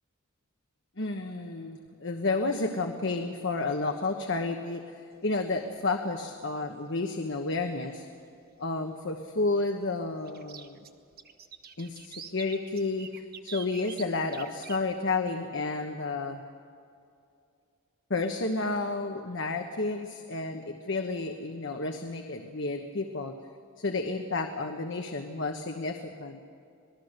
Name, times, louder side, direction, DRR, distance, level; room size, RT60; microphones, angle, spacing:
voice 1, 1.0-8.1 8.6-10.8 11.8-16.4 18.1-23.3 23.8-26.4, left 3 dB, 55° left, 4 dB, 1.2 m, -31 dB
sound 1, 5.4-5.8 7.4-7.5 7.9-8.0 10.2-14.8, right 7 dB, 45° right, 1.2 m, -45 dB
26.5 x 19.5 x 6.7 m, 2.4 s
head